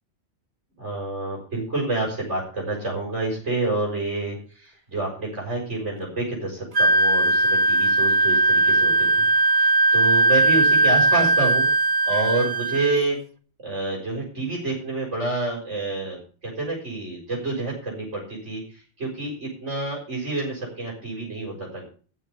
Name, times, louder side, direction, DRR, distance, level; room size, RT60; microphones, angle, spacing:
voice 1, 0.8-9.3 9.5-11.7 12.1-13.2 13.6-21.9, right 2 dB, 75° right, -3 dB, 6.9 m, -28 dB
Wind instrument woodwind instrument, 6.7-13.0, right 3 dB, 45° right, 1.3 m, -19 dB
14.0 x 7.6 x 7.0 m, 0.39 s
omnidirectional pair, 1.2 m